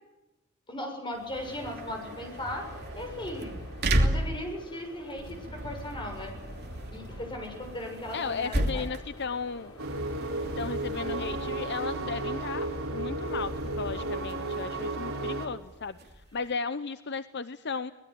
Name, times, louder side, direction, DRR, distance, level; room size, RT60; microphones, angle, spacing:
voice 1, 0.7-3.5 4.0-6.4 6.9-8.9, left 1 dB, 20° left, 3 dB, 7.0 m, -38 dB
sound 1, 1.1-16.5, right 1 dB, 50° right, 2.8 m, -35 dB
sound 2, 1.3-14.6, left 1 dB, 75° left, 5.8 m, -50 dB
voice 2, 8.1-9.7 10.6-17.9, left 5 dB, 50° left, 12 dB, 0.8 m, -35 dB
sound 3, 9.8-15.5, right 2 dB, 70° right, 4.4 m, -33 dB
25.0 x 20.0 x 9.5 m, 1.0 s
head